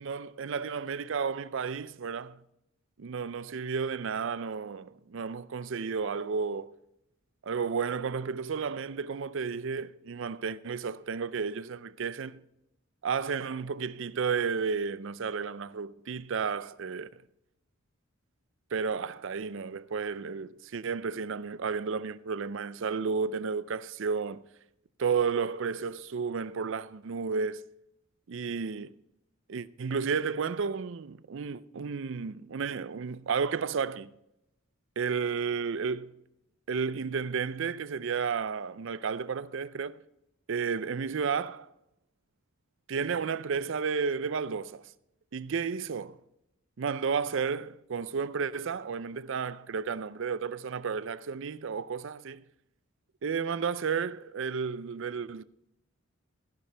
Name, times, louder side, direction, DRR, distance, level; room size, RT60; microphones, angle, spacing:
voice 1, 0.0-2.4 3.0-6.7 7.4-12.4 13.0-17.2 18.7-24.4 25.0-27.6 28.3-28.9 29.5-34.1 35.0-36.1 36.7-40.0 40.5-41.7 42.9-44.9 45.3-46.2 46.8-52.4 53.2-55.4, right 5 dB, 60° right, 0.5 m, -32 dB
14.0 x 12.0 x 3.4 m
head